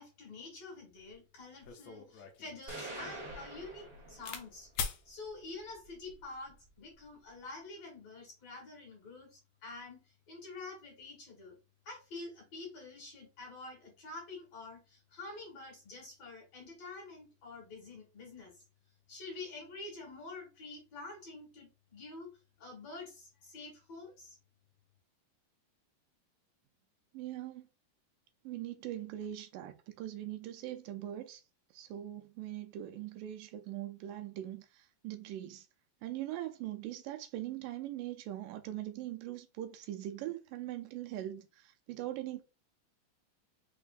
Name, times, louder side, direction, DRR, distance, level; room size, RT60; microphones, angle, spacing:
voice 1, 0.0-4.7 5.1-11.6 11.9-18.5 19.1-22.3 22.6-24.4, left 3 dB, 55° left, 2.6 m, -47 dB
sound 1, 1.1-1.2 1.6-4.4 4.7-5.0 5.9-6.2, left 6 dB, 80° left, 1.5 m, -42 dB
sound 2, 2.7-4.6, right 2 dB, 25° right, 1.6 m, -45 dB
voice 2, 27.1-27.7 28.4-31.4 31.7-35.7 36.0-42.4, right 13 dB, 85° right, 2.2 m, -41 dB
5.4 x 3.4 x 2.5 m
omnidirectional pair, 3.9 m